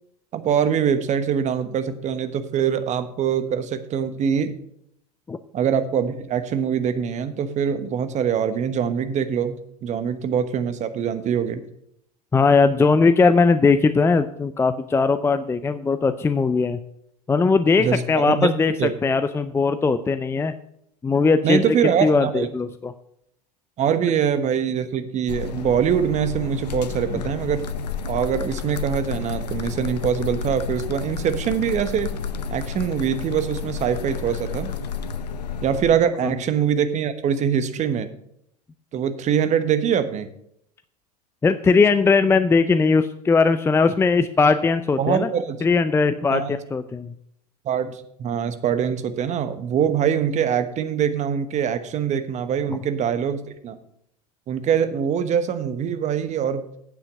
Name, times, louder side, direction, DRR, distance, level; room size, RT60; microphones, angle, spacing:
voice 1, 0.3-4.6 5.5-11.6 17.8-18.5 18.8-18.9 21.4-22.5 23.8-27.7 28.1-32.1 32.5-34.7 35.6-38.1 38.9-40.3 45.0-45.6 46.3-46.6 47.6-53.8 54.5-56.7, right 8 dB, 35° right, 11 dB, 1.2 m, -23 dB
voice 2, 12.3-16.8 17.3-18.7 19.0-20.5 21.0-21.8 22.0-22.9 27.1-27.2 41.4-45.3 45.6-46.4 46.7-47.1, left 4 dB, 10° left, 11 dB, 0.5 m, -19 dB
sound 1, 25.3-35.8, left 6 dB, 80° left, 0.7 m, -31 dB
9.0 x 7.5 x 6.3 m, 0.72 s
hypercardioid pair, 90°, 21 cm